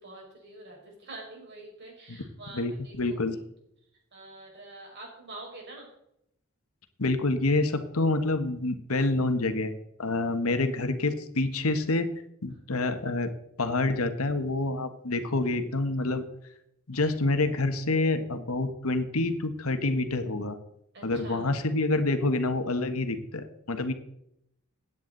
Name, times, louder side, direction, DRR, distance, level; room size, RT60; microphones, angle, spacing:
voice 1, 0.0-3.2 4.1-5.9 20.9-21.5, right 2 dB, 55° right, -1 dB, 5.7 m, -46 dB
voice 2, 2.5-3.4 7.0-9.7 10.0-12.1 12.4-13.3 13.6-16.2 16.9-20.6 21.0-23.9, left 2 dB, 85° left, 9 dB, 1.4 m, -27 dB
16.0 x 9.5 x 4.0 m, 0.77 s
head